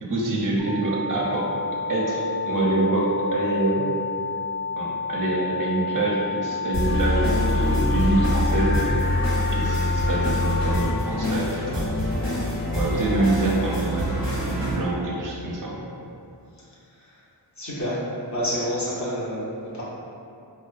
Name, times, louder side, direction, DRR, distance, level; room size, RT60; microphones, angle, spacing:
voice 1, 0.0-1.5 1.9-3.9 4.8-8.8 9.5-12.0 12.7-15.8, right 2 dB, 50° right, -4 dB, 0.5 m, -26 dB
sound 1, 0.6-10.6, left 5 dB, 5° right, 0.7 m, -30 dB
sound 2, 6.7-14.7, left 1 dB, 85° left, 0.9 m, -24 dB
voice 2, 17.6-18.0 18.3-19.8, equal, 40° left, -8 dB, 0.6 m, -28 dB
2.3 x 2.2 x 2.4 m, 2.6 s
wide cardioid pair, 65°, 43 cm